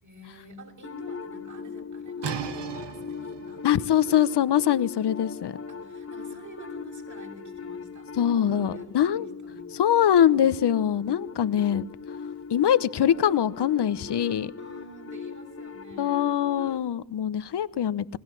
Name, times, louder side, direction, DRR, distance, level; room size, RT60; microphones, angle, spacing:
voice 1, 0.0-4.5 5.7-9.7 9.9-10.6 14.6-16.3, right 2 dB, 45° right, 4 dB, 6.3 m, -49 dB
sound 1, 0.8-16.8, left 5 dB, 30° left, 2.0 m, -39 dB
sound 2, 2.2-7.8, right 8 dB, 80° right, 1.6 m, -40 dB
voice 2, 3.6-5.6 8.2-9.3 9.7-11.8 12.5-14.5 16.0-18.2, left 10 dB, 75° left, 16 dB, 1.1 m, -23 dB
28.5 x 20.0 x 7.7 m, 0.73 s
cardioid pair, 85°, 41 cm